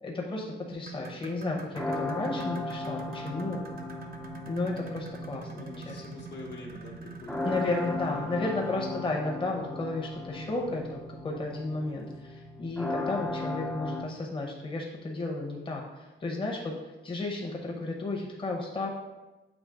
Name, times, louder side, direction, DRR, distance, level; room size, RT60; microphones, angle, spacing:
voice 1, 0.0-3.6 4.5-6.0 7.4-15.8 16.2-16.7 17.0-18.9, left 2 dB, 25° left, -2 dB, 0.9 m, -33 dB
sound 1, 0.7-9.1 10.5-10.7 11.1-11.2 11.9-12.0, right 5 dB, 45° right, 0.7 m, -47 dB
sound 2, 1.7-14.1, left 2 dB, 5° left, 0.4 m, -37 dB
voice 2, 5.4-7.8 8.3-8.4, left 2 dB, 60° left, 0 dB, 1.0 m, -46 dB
7.2 x 3.0 x 5.0 m, 1.1 s
wide cardioid pair, 135°, 20 cm